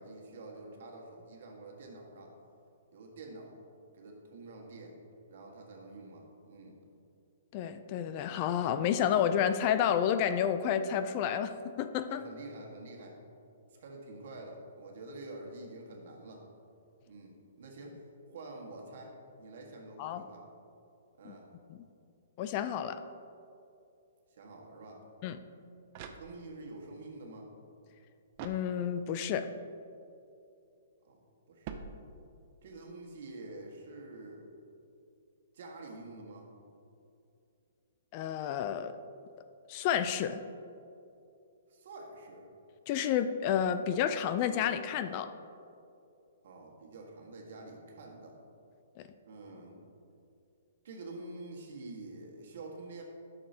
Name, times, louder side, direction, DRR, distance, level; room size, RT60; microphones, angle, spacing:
voice 1, 0.0-2.3 2.9-3.6 3.9-5.0 5.3-6.8 12.1-13.2 13.7-16.5 17.1-18.0 18.3-20.5 21.2-21.5 24.3-25.0 26.1-27.5 31.0-31.2 31.5-31.8 32.6-34.5 35.5-36.5 41.7-42.4 46.4-48.4 49.2-49.8 50.8-53.0, right 2 dB, 60° right, 0 dB, 1.5 m, -47 dB
voice 2, 7.5-12.2 20.0-20.2 21.3-21.4 21.7-21.8 22.4-23.0 25.2-25.4 28.4-29.5 38.1-39.0 39.7-40.4 42.9-45.3 49.0-49.1, left 9 dB, 35° left, 11 dB, 0.3 m, -30 dB
sound 1, 25.8-26.8 28.3-29.2 31.6-32.6, right 5 dB, 35° right, 0.5 m, -46 dB
11.0 x 6.6 x 2.8 m, 2.6 s
hypercardioid pair, 155°, 0 cm